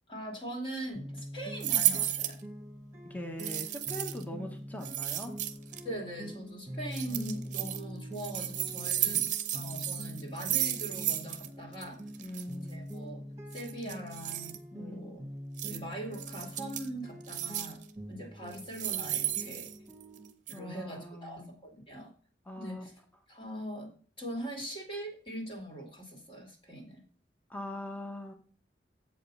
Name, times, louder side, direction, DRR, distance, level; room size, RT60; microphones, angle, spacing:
voice 1, 0.1-2.4 5.8-9.2 9.5-12.0 12.6-13.2 13.5-15.2 15.6-17.8 18.1-19.7 20.5-22.1 22.6-22.9 23.3-23.9 24.2-27.0, right 1 dB, 30° left, 1 dB, 2.6 m, -41 dB
sound 1, 0.9-20.3, equal, 15° right, 1.6 m, -44 dB
sound 2, 1.6-2.4 3.4-4.2 4.8-5.8 6.9-7.8 8.2-11.5 11.7-11.8 12.1-12.4 13.5-14.6 15.6-15.8 16.1-16.9 17.3-17.8 18.5-20.2 20.5-20.6, right 12 dB, 45° right, 0.8 m, -33 dB
voice 2, 3.0-5.4 7.0-7.3 12.2-12.9 14.7-15.2 20.5-21.5 22.5-22.8 27.5-28.3, left 1 dB, 10° left, 4 dB, 1.2 m, -42 dB
7.8 x 5.3 x 5.5 m, 0.41 s
head